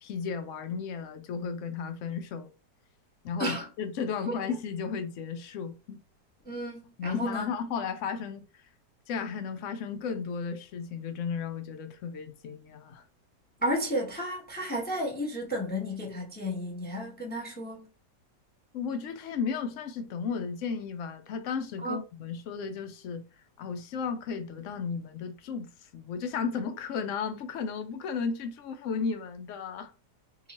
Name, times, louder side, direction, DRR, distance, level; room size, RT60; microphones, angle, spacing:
voice 1, 0.0-2.5 3.2-6.0 7.0-8.6 9.1-13.0 18.7-23.2 23.6-29.9, left 6 dB, 70° left, 0.7 m, -34 dB
voice 2, 6.4-7.5 13.6-17.9 21.8-22.0, equal, 10° left, 0.5 m, -32 dB
2.9 x 2.3 x 4.0 m
omnidirectional pair, 1.9 m